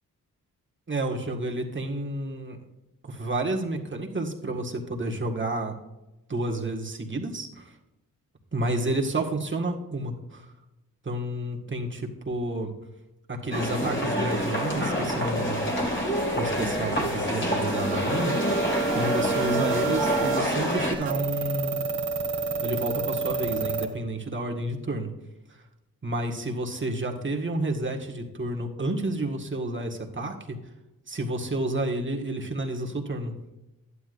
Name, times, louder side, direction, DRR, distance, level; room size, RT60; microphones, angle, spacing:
voice 1, 0.9-2.6 3.0-5.8 6.3-7.7 8.5-10.4 11.1-12.7 13.3-15.7 16.4-18.4 18.9-21.8 22.6-25.1 26.0-30.6 31.1-33.3, right 1 dB, 30° right, 1 dB, 1.8 m, -30 dB
sound 1, 13.5-20.9, equal, 30° left, 2.4 m, -27 dB
sound 2, 17.7-23.9, right 4 dB, 70° right, 2.1 m, -29 dB
11.5 x 9.8 x 2.6 m, 0.99 s
supercardioid pair, 50°, 37 cm